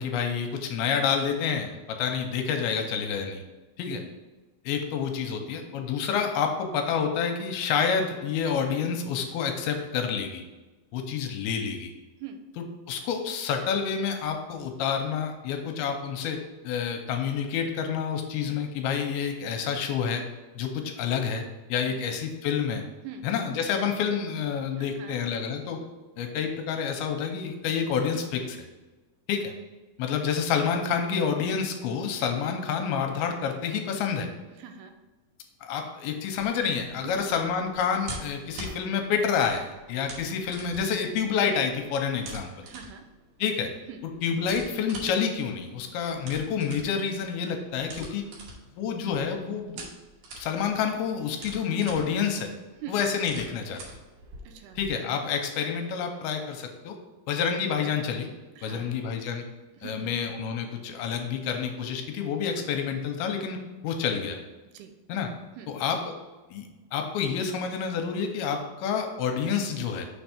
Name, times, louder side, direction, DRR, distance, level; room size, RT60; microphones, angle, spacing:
voice 1, 0.0-3.4 3.8-4.0 4.7-10.4 10.9-11.9 12.6-16.4 16.6-20.2 20.6-21.4 21.7-22.8 23.2-25.8 26.2-28.7 29.3-29.5 30.0-34.3 35.6-42.7 43.4-43.7 44.2-48.3 48.8-49.9 50.3-52.5 52.9-53.8 54.8-57.0 57.3-58.3 58.6-59.4 59.8-63.6 63.8-64.4 65.1-65.3 65.7-66.1 66.5-70.1, left 6 dB, 85° left, 4 dB, 2.5 m, -28 dB
voice 2, 24.8-25.2 34.6-34.9 37.0-37.2 42.6-43.0 43.9-44.0 52.8-52.9 54.4-54.8 58.6-59.1 59.8-60.3 64.7-64.9 65.6-65.7, right 8 dB, 85° right, 6 dB, 2.6 m, -43 dB
sound 1, 36.3-54.9, right 2 dB, 70° right, 2.7 m, -45 dB
6.6 x 3.5 x 5.8 m, 1.2 s
omnidirectional pair, 4.6 m